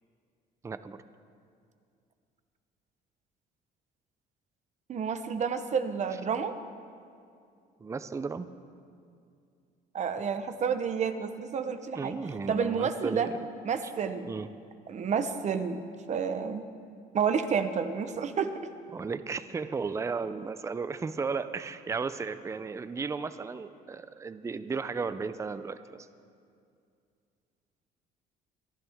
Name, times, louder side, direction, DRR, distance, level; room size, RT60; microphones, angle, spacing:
voice 1, 0.6-1.0 7.8-8.5 11.9-13.3 14.2-14.5 18.9-26.0, right 4 dB, 15° right, 13 dB, 0.5 m, -34 dB
voice 2, 4.9-6.5 9.9-12.2 12.5-13.3 13.6-14.3 14.9-15.8 16.1-16.7 17.1-18.5, right 6 dB, 45° right, 9 dB, 0.9 m, -30 dB
25.5 x 11.0 x 3.6 m, 2.4 s
cardioid pair, 110°, 17 cm